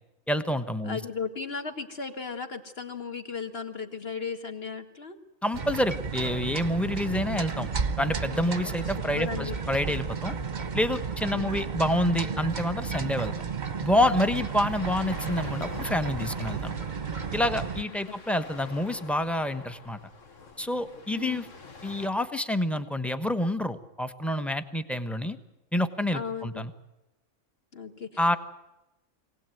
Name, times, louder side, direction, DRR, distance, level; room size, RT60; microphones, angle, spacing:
voice 1, 0.3-1.0 5.4-7.7 8.0-10.3 10.7-13.3 13.8-16.8 17.3-20.0 20.6-21.5 21.8-25.4 25.7-26.7 28.2-28.4, left 1 dB, ahead, 10 dB, 1.0 m, -28 dB
voice 2, 0.8-5.2 8.5-8.7 9.2-9.6 11.3-11.5 17.9-18.2 21.1-21.4 26.1-26.6 27.7-28.4, left 5 dB, 45° left, 5 dB, 2.2 m, -36 dB
sound 1, 5.5-17.8, right 5 dB, 35° right, 1.1 m, -33 dB
sound 2, 14.0-22.1, left 4 dB, 60° left, 2.1 m, -46 dB
23.5 x 18.0 x 9.2 m, 0.97 s
omnidirectional pair, 1.5 m